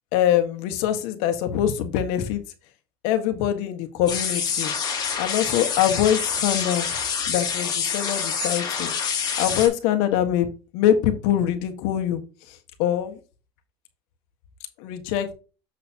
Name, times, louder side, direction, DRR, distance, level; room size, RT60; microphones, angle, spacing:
voice 1, 0.1-2.4 3.0-4.7 5.2-6.9 7.3-8.9 9.4-12.2 12.5-13.2 14.8-15.3, left 10 dB, 75° left, 7 dB, 1.5 m, -23 dB
sound 1, 4.1-9.7, left 6 dB, 40° left, 2.9 m, -27 dB
7.4 x 6.7 x 2.9 m, 0.33 s
cardioid pair, 130°, 11 cm